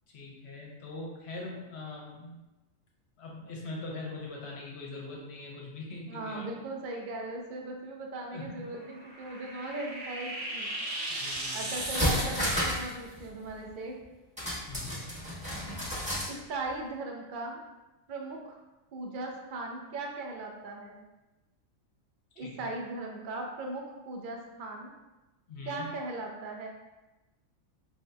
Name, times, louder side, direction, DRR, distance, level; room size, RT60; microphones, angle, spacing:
voice 1, 0.1-2.4 3.2-6.4 8.3-8.5 11.2-11.7 14.7-15.1 22.4-22.7 25.5-25.9, left 2 dB, 60° left, -2 dB, 0.9 m, -42 dB
voice 2, 6.1-10.7 11.5-14.0 16.3-17.6 18.1-18.6 18.9-21.0 22.4-24.9 25.7-26.7, right 2 dB, 75° right, 1 dB, 0.4 m, -38 dB
sound 1, 8.8-12.9, right 1 dB, 55° right, 1.0 m, -36 dB
sound 2, 11.3-11.4 11.8-12.9 13.2-13.3 14.4-16.3 16.7-16.8, equal, 5° right, 1.1 m, -31 dB
5.0 x 2.7 x 2.2 m, 1.1 s
omnidirectional pair, 1.4 m